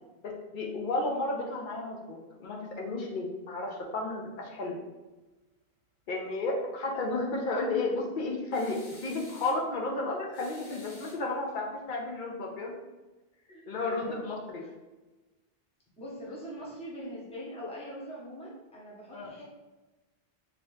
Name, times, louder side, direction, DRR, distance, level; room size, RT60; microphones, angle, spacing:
voice 1, 0.2-4.8 6.1-12.8 13.7-14.6 19.1-19.3, left 2 dB, 60° left, 0 dB, 0.7 m, -33 dB
sound 1, 8.5-9.6 10.3-11.6, left 2 dB, 80° left, 1.4 m, -52 dB
voice 2, 13.5-14.2 14.6-14.7 16.0-19.4, equal, 5° left, -6 dB, 0.7 m, -42 dB
2.9 x 2.7 x 3.1 m, 1.1 s
omnidirectional pair, 1.0 m